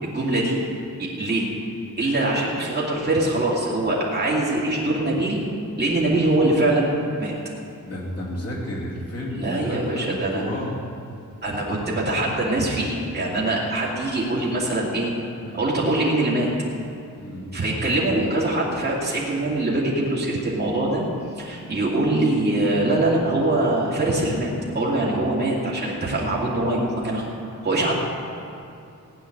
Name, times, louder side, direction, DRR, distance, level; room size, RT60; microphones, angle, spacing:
voice 1, 0.0-0.6 1.0-1.5 2.0-5.4 5.8-6.9 7.2-7.4 9.3-10.5 11.4-15.1 15.5-16.5 17.5-21.0 21.4-27.2 27.6-27.9, right 2 dB, 30° right, -6 dB, 2.5 m, -23 dB
voice 2, 7.9-10.8 14.3-14.5 15.4-15.7 17.2-17.5 24.9-25.2, left 1 dB, 50° left, -4 dB, 2.7 m, -32 dB
17.0 x 5.7 x 9.8 m, 2.6 s
wide cardioid pair, 170°, 32 cm